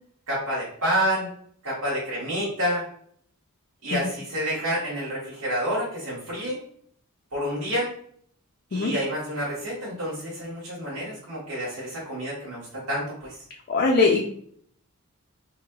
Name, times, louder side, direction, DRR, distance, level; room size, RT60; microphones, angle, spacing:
voice 1, 0.3-1.3 1.6-2.8 3.8-6.6 7.3-7.9 8.7-13.4, equal, 85° right, -8 dB, 1.2 m, -28 dB
voice 2, 13.7-14.2, left 3 dB, 45° left, 0 dB, 0.4 m, -21 dB
4.0 x 2.5 x 2.2 m, 0.63 s
head